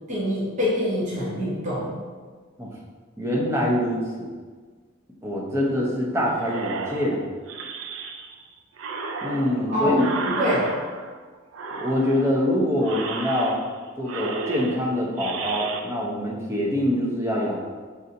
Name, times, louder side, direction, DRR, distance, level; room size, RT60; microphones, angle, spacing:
voice 1, 0.1-1.9 9.7-10.7, left 1 dB, 40° right, -7 dB, 0.9 m, -25 dB
voice 2, 3.2-4.3 5.2-7.3 9.2-10.1 11.8-13.6 14.0-17.6, left 1 dB, 15° right, -4 dB, 0.6 m, -24 dB
sound 1, 6.3-8.4 8.8-11.2 11.5-12.4 12.8-13.8 14.0-15.8, right 4 dB, 90° right, 0.4 m, -33 dB
5.4 x 2.6 x 2.6 m, 1.5 s
head